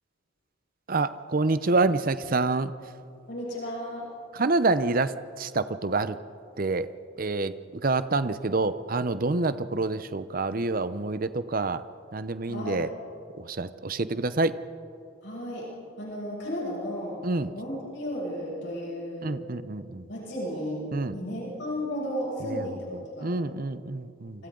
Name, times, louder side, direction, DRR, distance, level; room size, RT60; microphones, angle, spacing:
voice 1, 0.9-2.7 4.3-6.2 6.6-6.9 7.2-7.5 7.8-11.8 12.1-12.9 13.4-14.6 17.2-17.5 19.2-20.1 20.9-21.2 22.4-22.6 22.9-24.4, right 3 dB, 45° right, 13 dB, 0.7 m, -27 dB
voice 2, 3.3-4.1 12.5-12.9 15.2-15.7 16.0-17.3 17.5-19.3 20.1-20.8 21.1-23.3 24.4-24.5, equal, 60° left, -5 dB, 6.9 m, -34 dB
29.0 x 25.5 x 3.9 m, 2.5 s
head